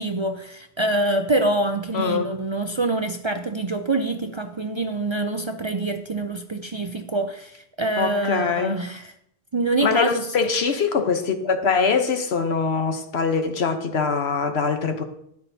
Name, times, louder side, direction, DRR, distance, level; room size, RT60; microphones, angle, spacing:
voice 1, 0.0-9.1 9.5-10.5, right 2 dB, 40° right, 6 dB, 0.5 m, -25 dB
voice 2, 1.9-2.3 8.0-8.8 9.8-15.0, left 5 dB, 80° left, 7 dB, 1.2 m, -23 dB
13.0 x 10.0 x 2.8 m, 0.74 s
omnidirectional pair, 1.1 m